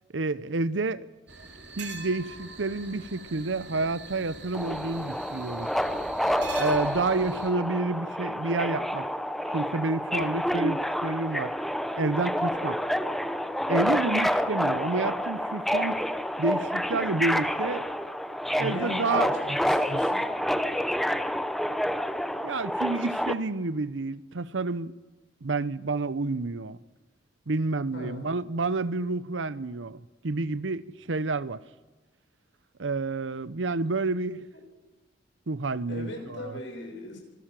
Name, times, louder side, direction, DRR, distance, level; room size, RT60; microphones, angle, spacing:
voice 1, 0.1-1.1 1.8-5.7 6.6-9.1 9.5-11.5 12.0-12.8 13.7-16.0 16.4-17.9 18.6-19.3 22.4-24.9 25.4-26.8 27.5-31.6 32.8-34.5 35.5-36.6, right 3 dB, 85° right, 0.8 m, -29 dB
sound 1, 1.3-7.5, right 4 dB, 65° right, 3.2 m, -43 dB
Subway metro underground, 4.5-23.3, equal, ahead, 0.8 m, -28 dB
voice 2, 18.5-20.3 27.9-28.2 35.9-37.2, left 1 dB, 80° left, 6.2 m, -38 dB
25.5 x 16.5 x 7.6 m
head